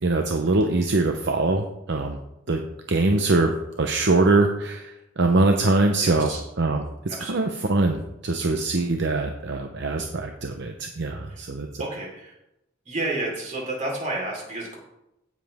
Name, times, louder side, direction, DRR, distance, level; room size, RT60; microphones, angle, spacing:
voice 1, 0.0-2.2 2.5-2.6 2.9-6.3 6.6-11.7, right 2 dB, 60° right, 4 dB, 0.8 m, -23 dB
voice 2, 6.0-6.4 7.1-7.6 11.3-11.5 11.8-12.4 12.9-14.8, right 2 dB, 40° right, -2 dB, 4.1 m, -31 dB
16.5 x 7.4 x 3.6 m, 0.87 s
head